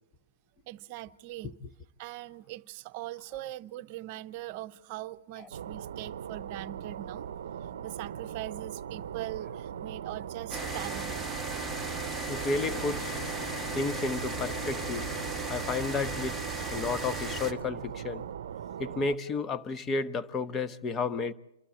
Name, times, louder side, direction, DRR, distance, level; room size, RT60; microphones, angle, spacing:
voice 1, 0.7-1.5 2.0-7.3 7.8-11.3, right 15 dB, 45° right, 0.8 m, -41 dB
sound 1, 5.5-19.2, right 8 dB, 75° right, 0.7 m, -40 dB
sound 2, 10.5-17.5, right 2 dB, ahead, 1.4 m, -36 dB
sound 3, 11.4-18.3, left 5 dB, 70° left, 0.9 m, -47 dB
voice 2, 12.3-13.2 13.7-15.1 15.5-16.4 16.7-18.2 18.8-21.3, left 3 dB, 20° left, 1.0 m, -32 dB
28.0 x 12.5 x 8.5 m
hypercardioid pair, 135°, 0 cm